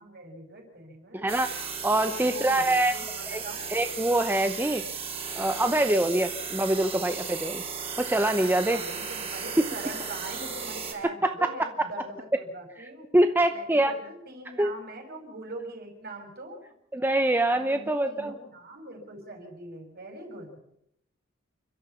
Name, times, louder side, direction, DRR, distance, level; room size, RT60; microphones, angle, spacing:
voice 1, 0.0-1.3 2.1-3.7 8.7-13.1 13.5-16.6 17.5-20.6, right 2 dB, 50° right, 3 dB, 6.1 m, -42 dB
voice 2, 1.1-3.0 3.3-3.4 3.7-4.9 5.3-7.6 8.0-8.8 11.2-11.5 13.1-13.9 14.6-14.7 16.9-18.3, right 1 dB, 10° right, 7 dB, 0.8 m, -24 dB
sound 1, 1.3-10.9, right 6 dB, 30° right, 4.8 m, -35 dB
29.0 x 12.5 x 7.0 m, 0.75 s
head